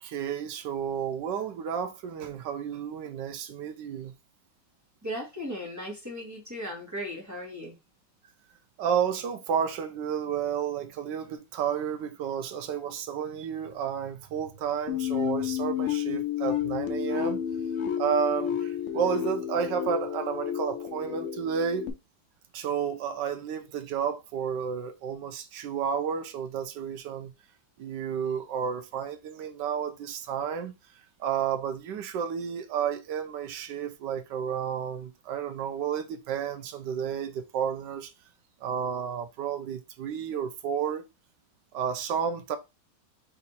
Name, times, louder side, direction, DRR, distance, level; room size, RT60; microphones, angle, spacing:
voice 1, 0.0-4.1 8.8-17.4 18.0-21.9 22.5-27.3 27.8-30.7 31.2-38.1 38.6-41.0 41.7-42.6, right 8 dB, 75° right, 1.2 m, -31 dB
voice 2, 5.0-7.7, equal, 10° right, 1.1 m, -36 dB
sound 1, 14.9-21.9, left 9 dB, 85° left, 0.6 m, -31 dB
4.2 x 2.6 x 4.1 m
omnidirectional pair, 2.1 m